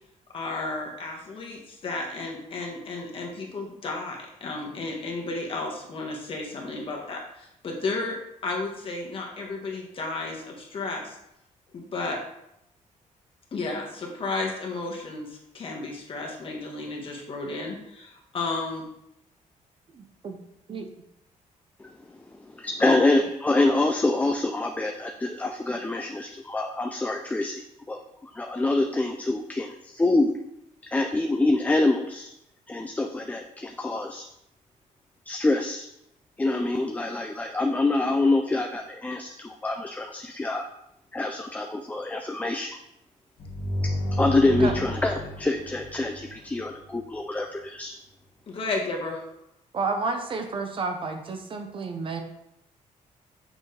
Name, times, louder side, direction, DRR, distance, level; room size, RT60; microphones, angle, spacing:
voice 1, 0.3-8.2 8.4-11.2 11.7-12.2 13.5-18.8 22.8-23.0 48.5-49.2, left 3 dB, 40° left, 0 dB, 1.6 m, -33 dB
voice 2, 19.9-20.4 20.7-20.9 44.6-44.7 49.7-52.2, right 4 dB, 40° right, 5 dB, 0.8 m, -31 dB
voice 3, 22.4-30.3 30.9-32.3 32.7-34.3 35.3-35.9 36.4-40.6 41.1-42.8 44.2-47.9, left 2 dB, 10° left, 4 dB, 0.4 m, -26 dB
sound 1, 43.4-47.0, left 1 dB, 70° left, 1.7 m, -31 dB
6.3 x 6.2 x 3.3 m, 0.82 s
cardioid pair, 130°, 13 cm